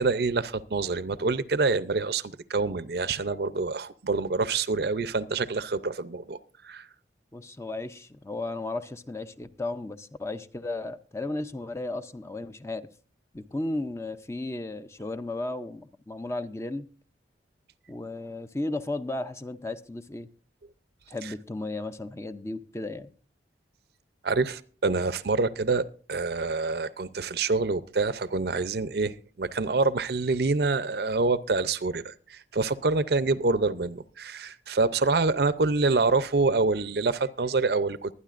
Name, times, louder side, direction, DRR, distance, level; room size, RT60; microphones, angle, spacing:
voice 1, 0.0-6.4 6.6-6.8 21.2-21.3 24.2-38.1, right 3 dB, 60° right, 15 dB, 0.6 m, -26 dB
voice 2, 7.3-12.9 13.3-16.9 17.9-20.3 21.1-23.1, left 2 dB, 15° left, 11 dB, 0.5 m, -34 dB
23.5 x 9.7 x 2.5 m, 0.39 s
head